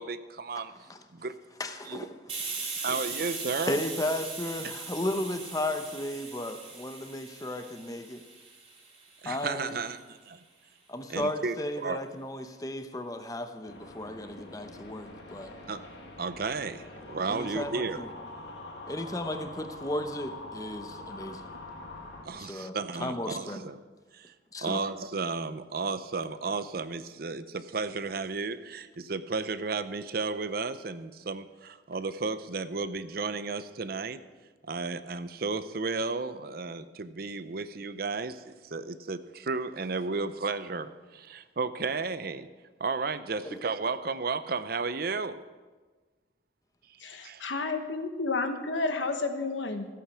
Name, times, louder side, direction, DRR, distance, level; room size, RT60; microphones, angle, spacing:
voice 1, 0.0-0.7 1.1-1.3 1.9-2.1 2.8-3.8 9.2-10.4 11.1-12.0 15.7-15.8 16.2-18.0 22.2-23.8 24.1-24.3 24.6-34.2 34.7-42.5 42.8-45.4 47.2-47.5, right 4 dB, 55° right, 12 dB, 0.6 m, -33 dB
voice 2, 1.6-2.1 3.7-8.2 9.3-9.8 10.9-15.5 17.3-18.1 18.9-21.5 22.4-23.7 24.5-24.8 43.4-43.6, left 1 dB, 20° left, 8 dB, 0.8 m, -34 dB
Hiss, 2.3-9.7, right 4 dB, 30° right, 3.2 m, -39 dB
sound 1, 13.7-22.2, left 2 dB, 60° left, 1.8 m, -44 dB
voice 3, 47.0-49.9, left 3 dB, 85° left, 6 dB, 1.3 m, -31 dB
14.5 x 8.5 x 6.2 m, 1.3 s
head